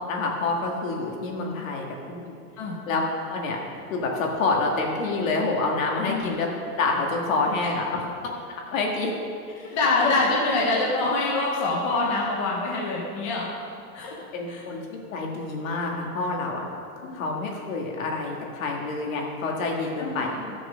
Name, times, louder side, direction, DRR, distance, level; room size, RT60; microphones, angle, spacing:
voice 1, 0.1-2.4 2.9-3.0 3.3-3.6 3.9-6.5 6.8-8.1 8.5-9.1 9.5-10.1 14.3-16.7 17.0-20.3, left 3 dB, 60° left, 0 dB, 2.0 m, -27 dB
voice 2, 9.7-13.5 13.9-14.2 14.5-14.6 17.0-17.1 20.0-20.5, left 3 dB, 20° left, -3 dB, 0.6 m, -25 dB
12.0 x 6.2 x 5.1 m, 2.4 s
supercardioid pair, 180°, 45 cm